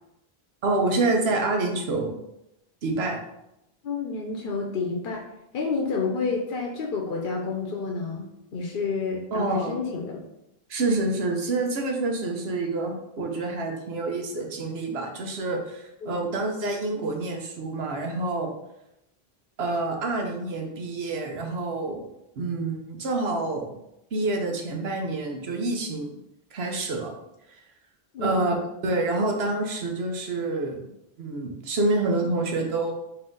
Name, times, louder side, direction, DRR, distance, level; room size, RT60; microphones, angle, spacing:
voice 1, 0.6-2.1 2.8-3.2 9.3-9.7 10.7-18.5 19.6-22.0 22.4-23.8 24.1-26.2 26.5-27.1 27.5-27.6 28.2-28.6 28.8-30.9 31.2-32.9, right 2 dB, 85° right, 2 dB, 1.0 m, -27 dB
voice 2, 3.8-5.3 5.5-10.2 16.0-16.1 28.1-28.5, left 4 dB, 65° left, 0 dB, 0.8 m, -29 dB
4.3 x 2.8 x 3.8 m, 0.85 s
omnidirectional pair, 1.0 m